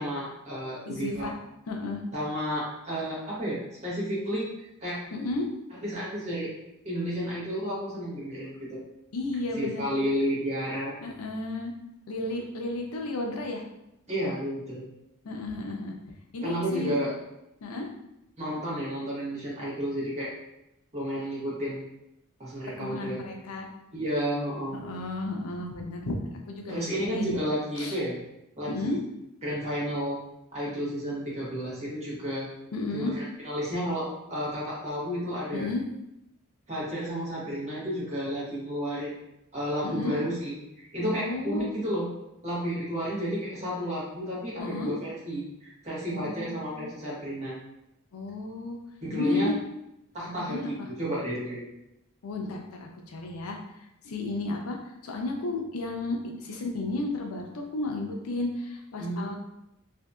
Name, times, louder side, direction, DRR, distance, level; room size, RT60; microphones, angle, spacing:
voice 1, 0.0-1.3 2.1-5.0 5.8-6.5 6.8-8.8 9.5-10.9 14.1-14.8 16.4-17.1 18.4-20.3 20.9-21.8 22.4-23.2 23.9-24.8 26.7-28.2 28.6-29.0 29.4-30.2 30.5-32.5 32.9-35.7 36.7-39.2 39.5-42.1 42.4-47.6 49.0-49.5 50.1-51.7 59.0-59.4, equal, 30° right, -7 dB, 1.1 m, -32 dB
voice 2, 0.9-1.3 1.7-2.0 5.1-5.5 9.1-9.9 11.0-11.7 12.1-13.6 15.2-15.9 16.3-17.0 17.6-17.9 22.8-23.7 24.7-27.4 27.8-28.0 28.7-29.0 32.7-33.1 35.5-35.8 39.8-40.2 41.2-41.7 44.6-44.9 46.1-46.9 48.1-48.8 49.1-49.6 50.4-50.9 52.2-53.6 54.0-59.4, left 2 dB, 75° left, 2 dB, 0.5 m, -33 dB
2.7 x 2.6 x 2.2 m, 0.86 s
head